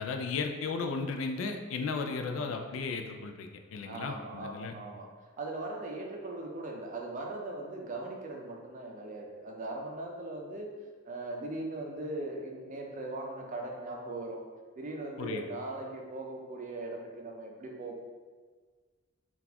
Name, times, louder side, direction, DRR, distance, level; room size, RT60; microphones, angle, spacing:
voice 1, 0.0-4.7 15.2-15.4, left 4 dB, 75° left, 5 dB, 0.3 m, -35 dB
voice 2, 1.9-2.6 3.8-5.1 5.4-10.7 11.0-14.4 14.8-18.0, right 2 dB, 40° right, 1 dB, 0.5 m, -39 dB
3.9 x 2.4 x 2.8 m, 1.5 s
head